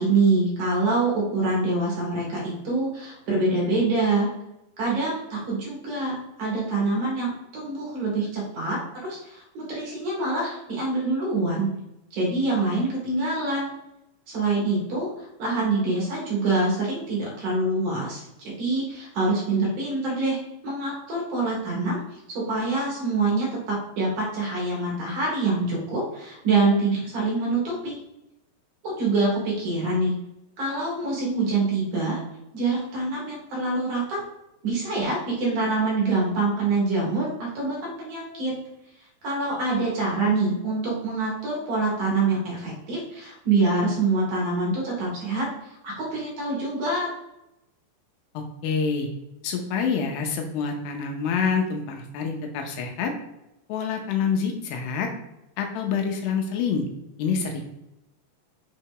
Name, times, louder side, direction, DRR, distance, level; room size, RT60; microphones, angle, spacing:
voice 1, 0.0-4.3 4.8-11.7 12.1-13.7 14.3-20.4 20.6-22.0 22.3-28.0 28.8-30.2 30.6-32.2 32.5-34.2 34.6-38.5 39.2-47.1, right 3 dB, 55° right, -4 dB, 2.8 m, -25 dB
voice 2, 48.3-49.1 49.4-53.1 53.7-55.1 55.6-56.9 57.2-57.7, left 5 dB, 80° left, 3 dB, 2.7 m, -27 dB
6.7 x 3.3 x 4.7 m, 0.88 s
omnidirectional pair, 5.0 m